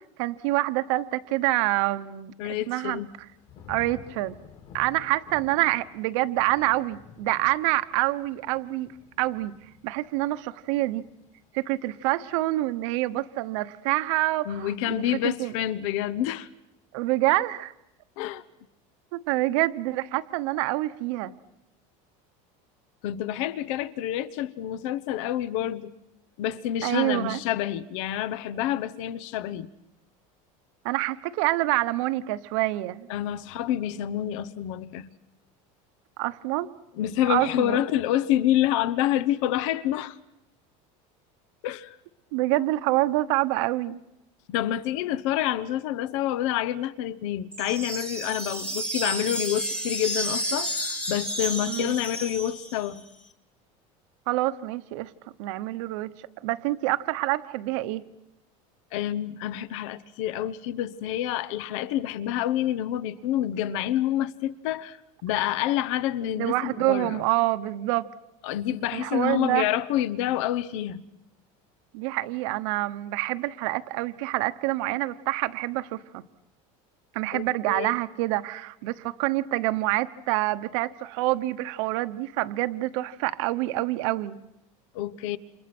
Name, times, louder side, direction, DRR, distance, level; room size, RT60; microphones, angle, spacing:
voice 1, 0.2-2.3 2.7-3.0 3.7-4.3 4.7-8.9 9.2-9.5 9.8-11.1 11.5-15.5 16.9-17.7 19.1-21.3 26.8-27.4 30.8-33.1 36.2-36.7 37.3-37.8 42.3-44.0 51.7-51.9 54.3-55.1 55.4-56.1 56.4-58.0 66.4-68.1 68.9-69.7 71.9-76.2 77.1-84.4, right 17 dB, 65° right, 1.1 m, -26 dB
voice 2, 2.4-3.1 14.5-16.5 18.2-18.4 23.0-25.9 26.4-29.7 33.1-35.1 37.0-40.2 41.6-42.0 44.5-53.0 58.9-65.0 65.2-67.2 68.4-71.1 77.3-77.9 84.9-85.4, left 12 dB, 70° left, 1.1 m, -28 dB
Thunder / Rain, 3.0-14.0 14.4-14.8, left 7 dB, 40° left, 3.3 m, -52 dB
sound 1, 47.5-53.0, equal, 5° left, 1.6 m, -31 dB
29.5 x 27.5 x 6.2 m
cardioid pair, 175°, 17 cm